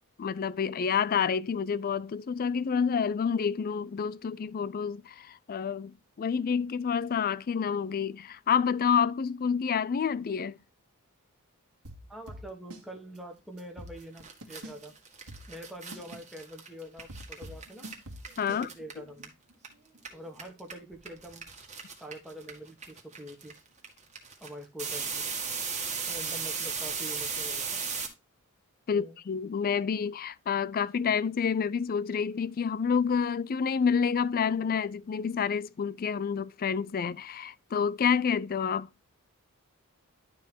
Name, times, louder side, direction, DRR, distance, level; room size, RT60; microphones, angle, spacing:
voice 1, 0.2-10.6 18.4-18.7 28.9-38.9, left 6 dB, 40° left, 0.4 m, -28 dB
sound 1, 11.8-12.9 13.1-13.2 13.6-14.9 15.3-18.6, equal, 80° right, 1.9 m, -44 dB
voice 2, 12.1-14.9 15.5-17.9 18.5-19.3 20.1-21.5 22.0-23.6 24.4-25.3 26.1-27.8 28.9-29.2, equal, ahead, 1.3 m, -45 dB
sound 2, 13.9-14.0 14.2-19.7 19.9-28.1, right 5 dB, 30° right, 1.7 m, -36 dB
11.5 x 3.8 x 4.4 m
head